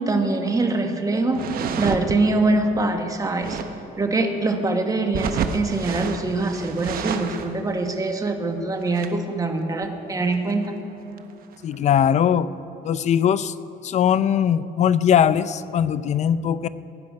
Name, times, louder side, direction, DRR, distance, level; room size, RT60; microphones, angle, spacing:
voice 1, 0.1-1.4 1.8-3.6 4.0-10.7, right 2 dB, 20° right, 5 dB, 1.3 m, -23 dB
sound 1, 1.3-2.2 3.3-3.7 5.1-7.5 7.9-8.0 8.2-8.3 8.8-9.2 10.3-10.7 11.2-11.3 11.5-12.0, right 7 dB, 60° right, 0.9 m, -29 dB
voice 2, 11.6-12.5 12.8-13.5 13.8-16.7, left 9 dB, 45° left, 15 dB, 0.4 m, -20 dB
18.5 x 9.7 x 5.3 m, 3.0 s
cardioid pair, 110°, 17 cm